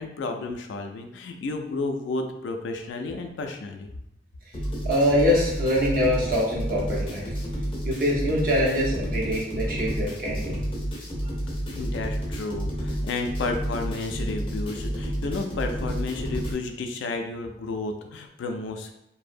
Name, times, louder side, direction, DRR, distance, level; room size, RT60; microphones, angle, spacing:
voice 1, 0.0-3.9 11.7-18.9, left 3 dB, 85° left, 5 dB, 0.3 m, -32 dB
sound 1, 4.5-16.5, equal, 30° left, 0.5 m, -30 dB
voice 2, 4.8-7.3 7.8-10.6, equal, 50° right, -4 dB, 0.7 m, -24 dB
2.6 x 2.0 x 2.5 m, 0.83 s
head